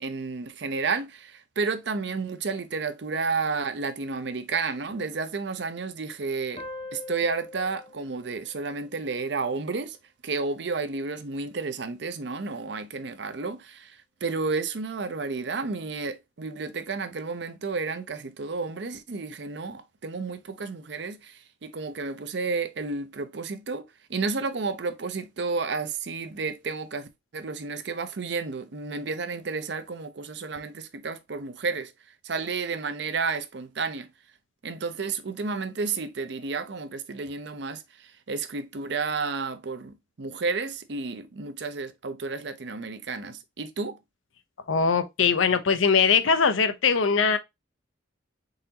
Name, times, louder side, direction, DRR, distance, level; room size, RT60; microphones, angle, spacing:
voice 1, 0.0-6.6 6.9-10.0 10.2-13.9 14.2-21.3 21.6-23.8 24.1-27.1 27.3-31.9 32.2-34.1 34.6-37.8 38.3-44.0, right 4 dB, 60° right, 0.6 m, -31 dB
sound 1, 6.6-9.7, left 2 dB, 30° left, 0.6 m, -43 dB
voice 2, 44.7-47.4, left 5 dB, 85° left, 0.6 m, -21 dB
4.0 x 3.9 x 2.7 m
head